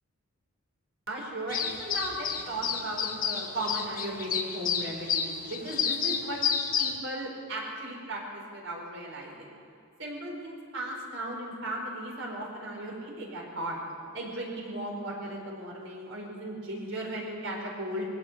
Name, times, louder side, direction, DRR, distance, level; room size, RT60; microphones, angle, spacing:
voice 1, 1.1-6.4 6.8-9.5 10.0-13.8 14.1-18.0, right 1 dB, 60° right, -1 dB, 4.8 m, -36 dB
sound 1, 1.5-7.0, left 7 dB, 40° left, 1.7 m, -30 dB
21.5 x 16.5 x 8.1 m, 2.7 s
head